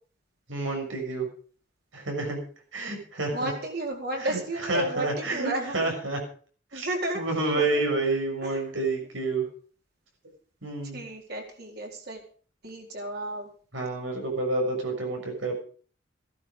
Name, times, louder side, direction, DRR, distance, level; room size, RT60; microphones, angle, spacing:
voice 1, 0.5-1.3 1.9-2.4 2.7-3.5 4.2-6.2 6.7-6.9 7.1-9.4 10.6-11.0 13.7-15.6, right 2 dB, 85° right, 2 dB, 6.7 m, -29 dB
voice 2, 3.3-5.8 6.7-7.2 7.6-7.8 8.4-8.7 10.9-12.2 12.6-13.5, right 2 dB, 55° right, 1 dB, 4.4 m, -33 dB
15.5 x 12.5 x 5.3 m, 0.42 s
head